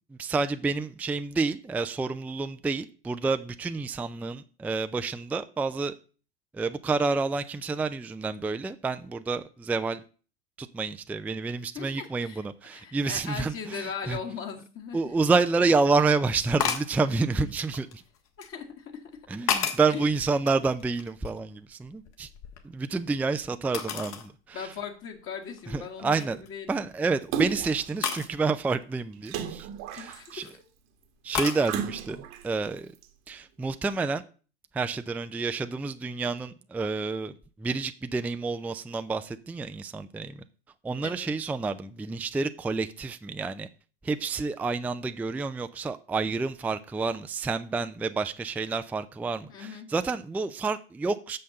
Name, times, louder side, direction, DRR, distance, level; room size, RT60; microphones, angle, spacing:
voice 1, 0.2-5.9 6.5-10.0 10.6-14.2 14.9-18.0 19.3-22.3 22.6-24.7 25.7-26.4 26.7-29.7 29.9-30.4 31.2-32.2 32.4-32.9 33.3-34.2 34.7-37.3 37.6-40.4 40.8-43.7 44.0-51.4, right 4 dB, 5° right, 0.4 m, -29 dB
voice 2, 11.7-12.4 12.7-15.0 17.1-17.5 18.4-19.0 19.9-20.1 24.5-26.8 30.0-30.6 31.5-31.7 41.0-41.3 49.5-49.9, left 6 dB, 40° left, 1.7 m, -39 dB
sound 1, 15.1-15.2 16.6-17.0 17.7-18.5 19.1-20.0 20.4-21.5 21.8-23.1 23.7-24.3 24.8-24.9 25.5-25.7 26.1-26.5 28.0-28.3 30.0-30.5 31.3-31.6, left 8 dB, 55° left, 1.7 m, -32 dB
Splash splatter, 27.3-27.9 29.3-30.5 31.6-32.4 33.0-33.1, right 8 dB, 55° right, 1.3 m, -34 dB
6.5 x 5.8 x 6.4 m
hypercardioid pair, 90°, 33 cm